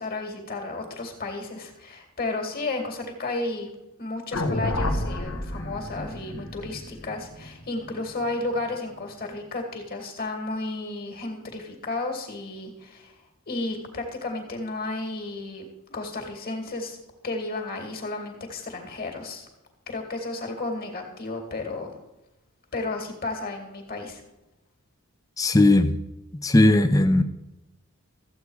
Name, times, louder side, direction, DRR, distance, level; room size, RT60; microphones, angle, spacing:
voice 1, 0.0-3.7 4.0-13.1 13.5-17.0 17.2-19.5 19.9-21.9 22.7-24.2, left 2 dB, 45° left, 4 dB, 2.1 m, -33 dB
sound 1, 4.3-8.6, left 1 dB, 65° left, 1.2 m, -30 dB
voice 2, 25.4-25.9 26.4-27.2, left 1 dB, 15° left, 8 dB, 0.6 m, -17 dB
14.5 x 8.2 x 4.8 m, 0.91 s
head